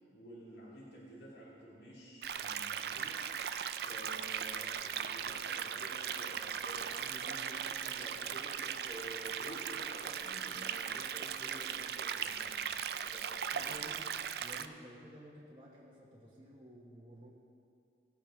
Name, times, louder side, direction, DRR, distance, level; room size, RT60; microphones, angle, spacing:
voice 1, 0.1-12.7 13.0-13.7, equal, 70° left, -5 dB, 2.5 m, -51 dB
sound 1, 2.2-14.7, right 8 dB, 60° right, 0.4 m, -38 dB
voice 2, 13.5-14.0 14.4-17.3, equal, 25° right, -6 dB, 1.3 m, -53 dB
17.0 x 8.6 x 3.7 m, 2.5 s
head